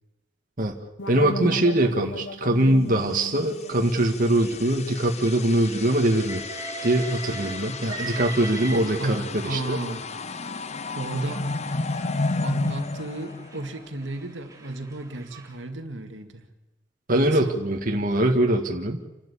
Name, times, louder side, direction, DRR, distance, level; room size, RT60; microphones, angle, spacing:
sound 1, 1.0-5.9, left 1 dB, 75° left, 1.6 m, -37 dB
voice 1, 1.1-6.4 6.8-9.8 17.1-19.0, right 1 dB, 45° right, 2 dB, 1.9 m, -22 dB
sound 2, 3.4-14.1, left 3 dB, 35° left, 0.7 m, -33 dB
Train, 6.1-9.5 10.3-15.6, right 3 dB, 20° right, 2.9 m, -40 dB
voice 2, 9.0-10.5 10.9-11.4 12.4-16.5 17.1-17.6, right 2 dB, 75° right, 5 dB, 2.2 m, -33 dB
29.5 x 12.5 x 8.5 m, 1.0 s
head